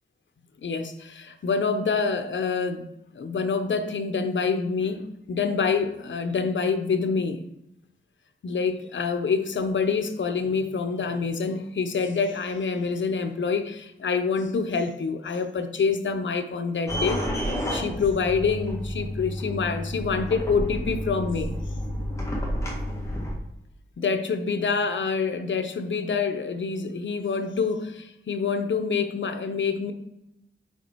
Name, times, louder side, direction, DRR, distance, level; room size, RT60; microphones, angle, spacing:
voice 1, 0.6-2.9 3.1-7.5 8.4-17.2 17.7-21.6 24.0-29.9, left 5 dB, 80° left, 0.8 m, -26 dB
sound 1, 16.9-23.4, equal, 15° left, 1.5 m, -30 dB
6.9 x 5.0 x 4.5 m
wide cardioid pair, 120°, 19 cm